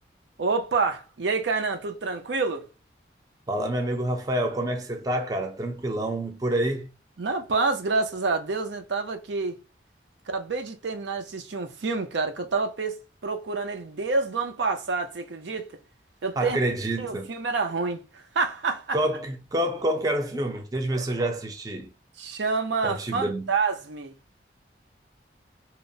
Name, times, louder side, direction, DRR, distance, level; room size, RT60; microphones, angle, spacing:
voice 1, 0.4-2.7 7.2-9.6 10.3-15.7 16.2-16.6 17.0-18.0 18.3-19.0 22.2-24.1, right 4 dB, 85° right, 0.6 m, -28 dB
voice 2, 3.5-6.9 16.4-17.3 18.9-21.9 22.8-23.5, right 1 dB, 20° right, 0.4 m, -27 dB
2.8 x 2.1 x 2.6 m
head